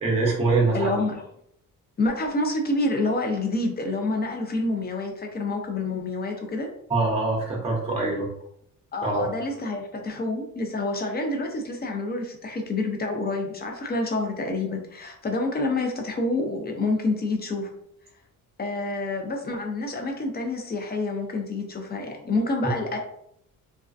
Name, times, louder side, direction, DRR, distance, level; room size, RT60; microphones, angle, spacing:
voice 1, 0.0-0.9 6.9-8.3 9.0-9.3, right 3 dB, 20° right, -2 dB, 0.6 m, -23 dB
voice 2, 0.7-1.2 2.0-6.7 8.9-17.7 18.6-23.0, left 2 dB, 30° left, 3 dB, 0.5 m, -28 dB
2.3 x 2.2 x 2.4 m, 0.72 s
cardioid pair, 105°, 35 cm